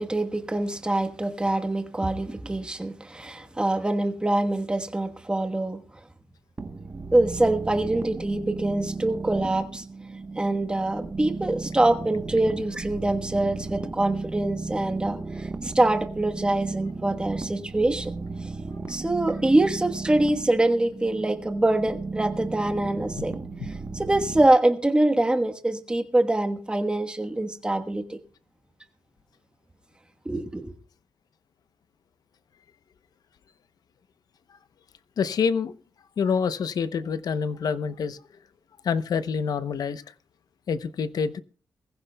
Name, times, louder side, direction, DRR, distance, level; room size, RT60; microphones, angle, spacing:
voice 1, 0.0-5.8 7.1-9.8 10.4-18.1 18.4-18.5 18.9-23.3 23.6-28.2 30.2-30.7, right 2 dB, 15° right, 1.3 m, -24 dB
sound 1, 6.6-24.5, right 3 dB, 30° right, 1.1 m, -35 dB
voice 2, 35.2-35.7 36.2-38.2 38.8-40.0 40.7-41.4, left 6 dB, 65° left, 0.8 m, -26 dB
22.0 x 15.0 x 2.3 m
wide cardioid pair, 130°, 7 cm